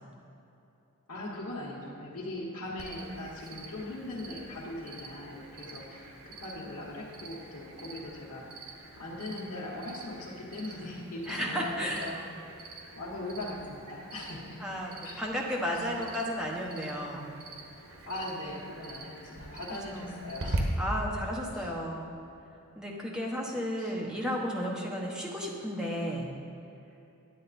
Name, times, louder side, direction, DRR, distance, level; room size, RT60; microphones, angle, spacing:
voice 1, 1.1-8.7 9.0-12.2 12.9-14.6 15.0-15.2 15.7-15.8 18.1-20.8 21.5-21.7 23.1-23.2 23.8-23.9, left 1 dB, 90° left, -7 dB, 1.4 m, -40 dB
Cricket, 2.8-20.6, right 2 dB, 75° right, 1.2 m, -45 dB
voice 2, 11.3-12.1 14.6-17.3 19.9-20.1 20.8-22.1 22.8-26.3, equal, 5° right, -3 dB, 1.1 m, -33 dB
10.0 x 8.2 x 4.2 m, 2.9 s
head